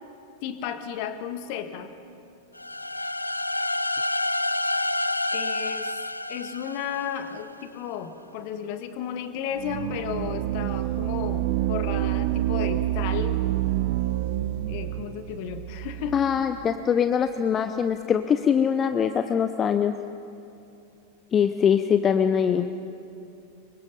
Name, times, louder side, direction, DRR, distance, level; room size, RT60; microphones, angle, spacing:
voice 1, 0.4-1.9 5.3-6.0 6.3-13.5 14.7-16.2, left 8 dB, 45° left, 9 dB, 1.7 m, -33 dB
sound 1, 2.6-7.4, left 2 dB, 85° left, 0.5 m, -28 dB
sound 2, 9.6-16.7, right 15 dB, 50° right, 0.7 m, -28 dB
voice 2, 16.1-20.0 21.3-22.7, left 7 dB, 25° left, 9 dB, 0.7 m, -23 dB
26.0 x 24.0 x 5.5 m, 2.6 s
figure-of-eight pair, 90°, 0 cm